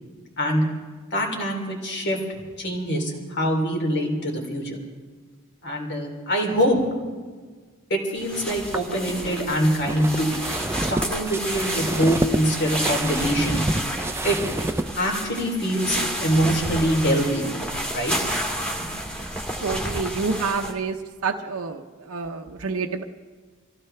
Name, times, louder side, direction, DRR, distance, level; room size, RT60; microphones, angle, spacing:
voice 1, 0.4-0.7 1.1-4.8 5.6-6.8 7.9-10.3 10.9-13.6 14.2-14.4 15.0-17.5 17.9-18.1 18.8-18.9, equal, 55° left, 1 dB, 3.2 m, -24 dB
sound 1, 8.2-20.7, right 1 dB, 5° left, 1.8 m, -30 dB
sound 2, 8.6-14.9, right 2 dB, 10° right, 0.5 m, -29 dB
voice 2, 19.6-21.0 21.2-23.0, right 4 dB, 75° right, 4 dB, 0.8 m, -28 dB
24.5 x 16.0 x 3.4 m, 1.5 s
head